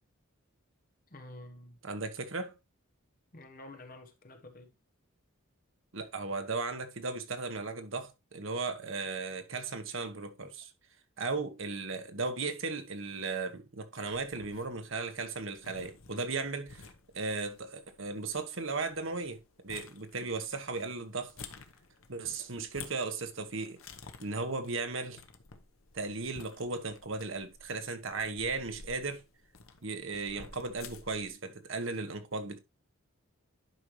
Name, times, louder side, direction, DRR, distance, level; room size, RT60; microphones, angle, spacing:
voice 1, 1.1-1.8 3.3-4.7, left 1 dB, 40° left, 1.2 m, -49 dB
voice 2, 1.8-2.5 5.9-10.7 11.2-16.9 17.1-21.3 22.1-23.8 24.2-25.2 25.9-29.2 29.8-32.6, right 3 dB, 65° right, 1.3 m, -36 dB
sound 1, 14.1-31.3, left 5 dB, 70° left, 1.0 m, -53 dB
10.5 x 5.3 x 3.1 m
head